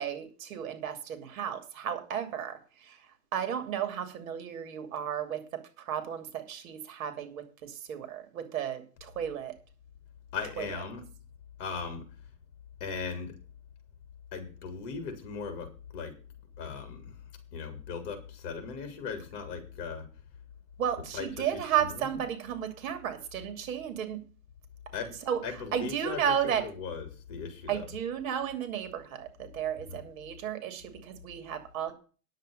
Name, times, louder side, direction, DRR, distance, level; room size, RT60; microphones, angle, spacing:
voice 1, 0.0-3.0 3.3-9.5 10.6-10.7 20.8-24.2 25.2-25.4 25.7-26.6 27.7-31.9, right 9 dB, 60° right, 8 dB, 2.8 m, -33 dB
voice 2, 10.3-11.0 11.6-12.0 12.8-13.3 14.3-16.1 16.6-17.1 17.5-20.0 21.1-21.3 21.5-22.1 24.9-25.2 25.4-27.9 29.9-30.0, left 5 dB, 40° left, 6 dB, 3.7 m, -38 dB
10.5 x 7.5 x 6.7 m, 0.37 s
hypercardioid pair, 150°, 47 cm